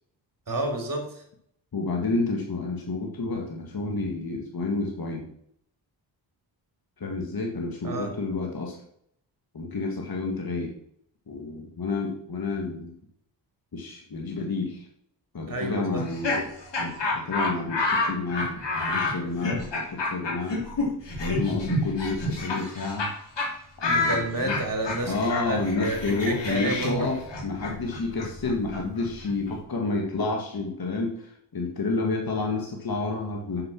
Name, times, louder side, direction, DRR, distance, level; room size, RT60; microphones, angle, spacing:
voice 1, 0.5-1.2 7.8-8.1 15.5-16.0 23.8-27.1, right 2 dB, 45° right, 4 dB, 3.2 m, -30 dB
voice 2, 1.7-5.3 7.0-8.8 9.5-10.7 11.3-12.9 13.7-14.8 15.3-16.5 16.8-20.5 21.2-23.1 23.8-24.6 25.0-33.6, left 3 dB, 50° left, 0 dB, 2.1 m, -30 dB
Laughter, 15.9-23.1 23.4-23.5 23.8-29.5, left 2 dB, 70° left, 3.6 m, -29 dB
7.2 x 6.7 x 6.1 m, 0.69 s
cardioid pair, 50°, 44 cm